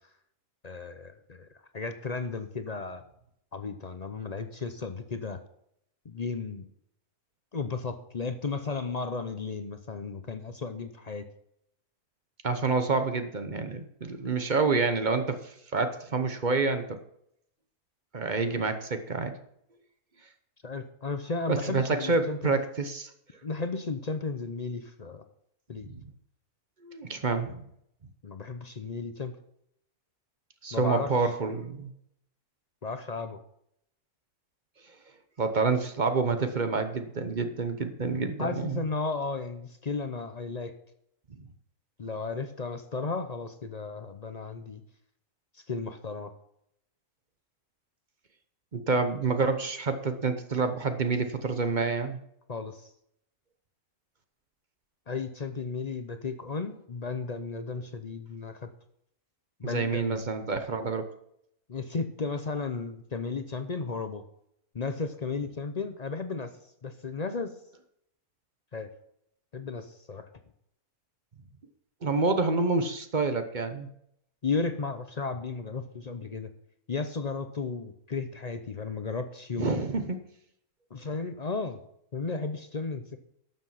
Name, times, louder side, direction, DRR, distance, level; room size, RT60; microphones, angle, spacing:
voice 1, 0.6-1.5 1.7-3.0 3.5-5.4 6.0-6.7 7.5-11.3 20.6-22.5 23.4-25.2 25.7-25.9 28.2-29.3 30.7-31.1 32.8-33.4 38.4-40.7 42.0-44.8 45.5-46.3 52.5-52.9 55.1-58.7 59.6-60.2 61.7-64.2 64.7-66.5 66.8-67.5 68.7-68.9 69.5-70.2 74.4-76.5 76.9-79.8 80.9-81.8 82.1-83.2, left 4 dB, 45° left, 8 dB, 0.5 m, -34 dB
voice 2, 12.4-17.0 18.1-19.4 21.5-23.1 25.8-26.0 26.8-27.6 30.6-31.9 35.4-38.8 48.7-52.2 59.6-61.1 72.0-73.9 79.6-80.2, right 4 dB, 35° right, 8 dB, 0.9 m, -28 dB
12.0 x 7.4 x 5.7 m, 0.74 s
omnidirectional pair, 1.6 m